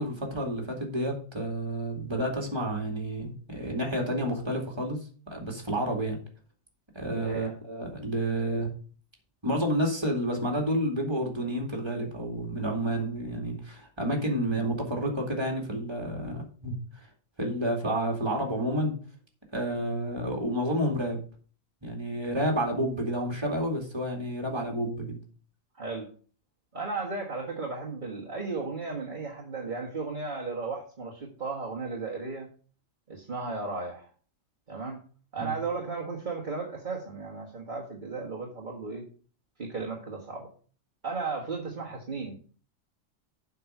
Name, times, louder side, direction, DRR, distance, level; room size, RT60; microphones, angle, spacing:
voice 1, 0.0-5.0 5.3-6.2 6.9-8.7 9.4-16.7 17.4-18.9 19.5-21.2 21.8-25.2 35.4-35.5, right 1 dB, 20° right, 1 dB, 2.4 m, -30 dB
voice 2, 7.1-7.5 25.8-26.1 26.7-32.5 33.1-34.1 34.7-35.0 35.3-39.0 39.6-40.5 41.0-42.4, right 4 dB, 40° right, -3 dB, 1.8 m, -35 dB
7.8 x 5.7 x 6.4 m, 0.41 s
omnidirectional pair, 1.4 m